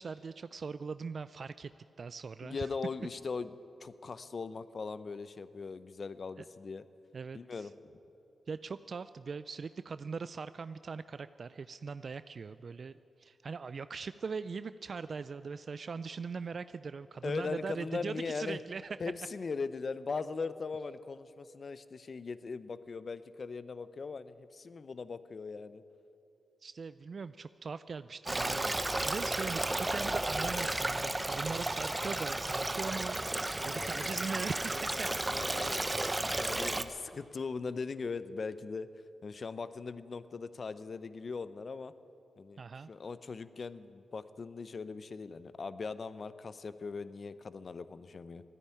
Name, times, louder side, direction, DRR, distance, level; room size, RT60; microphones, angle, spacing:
voice 1, 0.0-1.7 2.0-2.7 6.4-6.5 7.1-7.7 8.5-19.0 26.6-28.7 29.0-35.2 42.6-42.9, right 5 dB, 60° right, 14 dB, 0.3 m, -41 dB
voice 2, 2.4-3.5 3.8-6.8 7.3-7.7 17.2-18.6 19.0-25.8 33.6-34.3 34.7-35.8 36.3-38.9 39.2-41.9 42.4-42.6 42.9-48.4, left 4 dB, 55° left, 14 dB, 0.6 m, -40 dB
Stream, 28.3-36.8, right 2 dB, 20° right, 0.7 m, -33 dB
14.0 x 9.9 x 9.8 m, 2.8 s
cardioid pair, 55°, 0 cm